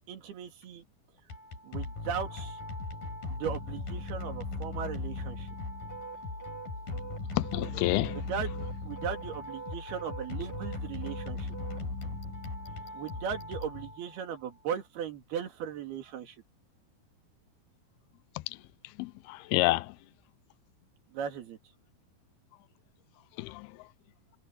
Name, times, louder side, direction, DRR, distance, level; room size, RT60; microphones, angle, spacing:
voice 1, 0.1-0.8 1.6-2.6 3.3-5.5 8.1-11.6 12.9-16.4 21.1-21.6, right 8 dB, 75° right, 4.3 m, -37 dB
sound 1, 1.2-14.4, left 3 dB, 60° left, 9.5 m, -38 dB
sound 2, 5.9-12.1, right 6 dB, 45° left, 8.8 m, -45 dB
voice 2, 7.4-8.2 19.0-19.9 23.4-23.7, left 20 dB, 85° left, 2.5 m, -29 dB
omnidirectional pair, 4.6 m